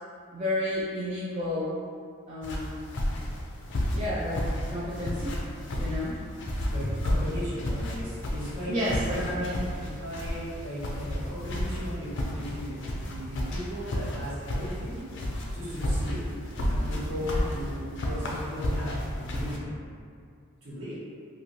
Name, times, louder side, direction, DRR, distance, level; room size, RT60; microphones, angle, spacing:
voice 1, 0.3-1.8 2.3-2.8 3.9-5.4 5.7-6.2 8.7-9.5 17.2-17.4, left 1 dB, 30° right, -9 dB, 0.4 m, -31 dB
sound 1, 2.4-19.6, left 1 dB, 55° left, 0.4 m, -32 dB
voice 2, 6.7-15.0 15.5-16.2 16.7-19.8 20.6-20.9, equal, 65° right, -11 dB, 1.2 m, -36 dB
3.0 x 2.5 x 2.7 m, 2.2 s
head